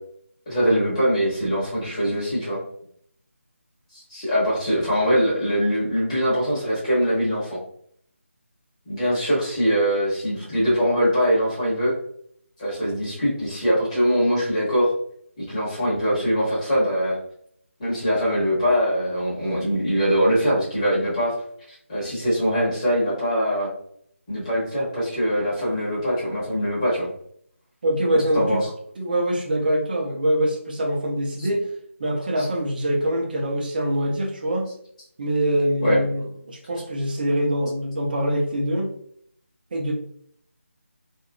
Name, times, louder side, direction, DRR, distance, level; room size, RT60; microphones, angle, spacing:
voice 1, 0.5-2.6 3.9-7.6 8.8-11.9 12.6-14.9 15.4-17.2 17.8-21.3 21.7-23.7 24.3-27.1 28.1-28.7 31.4-31.5 35.8-36.0, equal, 30° left, -7 dB, 1.3 m, -22 dB
voice 2, 27.8-28.6 29.0-31.7 32.0-34.7 35.2-38.9 39.7-39.9, right 1 dB, 40° right, 1 dB, 0.6 m, -24 dB
2.9 x 2.6 x 2.3 m, 0.65 s
figure-of-eight pair, 160°, 8 cm